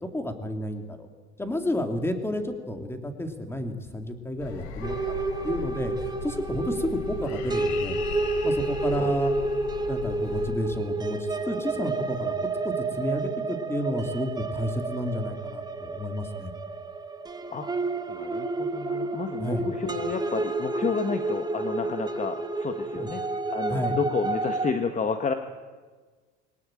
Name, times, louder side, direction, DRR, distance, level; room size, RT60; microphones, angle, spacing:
voice 1, 0.1-1.1 1.4-8.0 8.4-9.3 9.9-12.3 12.6-16.5 19.4-19.7 23.0-23.1 23.7-24.0, left 1 dB, 10° left, 5 dB, 2.9 m, -31 dB
sound 1, 4.4-10.5, left 7 dB, 90° left, 3.8 m, -38 dB
sound 2, 4.8-24.7, right 3 dB, 15° right, 1.5 m, -30 dB
voice 2, 18.1-23.2 23.5-25.3, left 5 dB, 25° left, 7 dB, 1.5 m, -30 dB
22.5 x 19.0 x 9.1 m, 1.4 s
cardioid pair, 125°, 29 cm